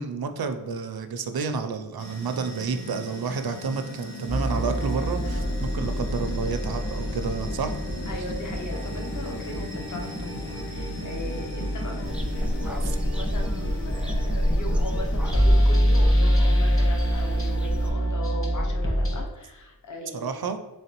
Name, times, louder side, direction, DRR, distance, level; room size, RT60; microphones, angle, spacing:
voice 1, 0.0-7.7 20.1-20.6, right 5 dB, 65° right, 8 dB, 0.5 m, -30 dB
sound 1, 2.0-16.8, left 1 dB, 80° left, 0.9 m, -41 dB
sound 2, 4.3-19.2, equal, 35° left, 1.1 m, -26 dB
voice 2, 8.1-20.4, left 1 dB, 50° left, 2 dB, 0.6 m, -39 dB
sound 3, 12.0-17.9, equal, 5° right, 0.3 m, -30 dB
3.9 x 3.1 x 2.9 m, 1.0 s
wide cardioid pair, 40°, 39 cm